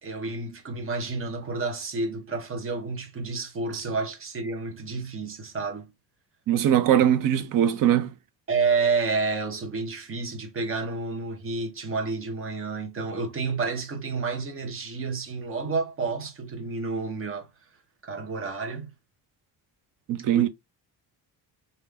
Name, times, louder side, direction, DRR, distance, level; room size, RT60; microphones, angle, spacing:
voice 1, 0.0-5.9 8.5-17.5 18.0-18.9 20.3-20.5, right 4 dB, 35° right, 1.0 m, -30 dB
voice 2, 6.5-8.1 20.1-20.5, right 10 dB, 55° right, 0.6 m, -21 dB
3.3 x 2.7 x 3.4 m
cardioid pair, 165°, 38 cm